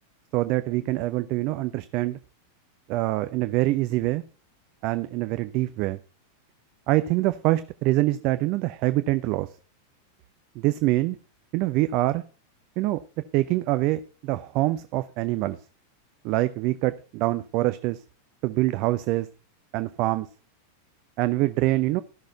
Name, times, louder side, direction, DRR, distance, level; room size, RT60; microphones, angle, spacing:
voice 1, 0.3-2.2 2.9-4.2 4.8-6.0 6.9-9.5 10.6-11.2 11.5-12.2 12.8-13.0 13.3-15.6 16.2-18.0 18.4-19.3 19.7-20.3 21.2-22.0, right 17 dB, 40° right, 13 dB, 0.6 m, -25 dB
14.5 x 6.3 x 5.3 m, 0.37 s
figure-of-eight pair, 90°, 0 cm